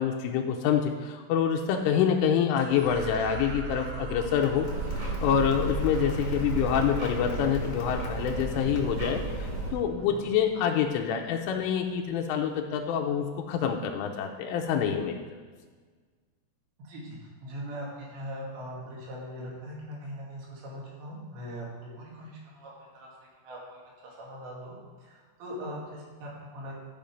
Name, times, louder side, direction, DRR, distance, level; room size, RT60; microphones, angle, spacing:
voice 1, 0.0-4.7 5.2-15.2, left 8 dB, 90° left, 2 dB, 3.2 m, -26 dB
sound 1, 2.6-11.2, right 5 dB, 90° right, 3.5 m, -43 dB
Applause, 4.0-9.2, left 4 dB, 70° left, 2.1 m, -49 dB
sound 2, 4.7-9.7, right 2 dB, 45° right, 4.7 m, -32 dB
voice 2, 16.8-23.1 23.4-26.7, equal, 65° right, -4 dB, 4.1 m, -41 dB
13.0 x 5.0 x 5.2 m, 1.5 s
omnidirectional pair, 5.6 m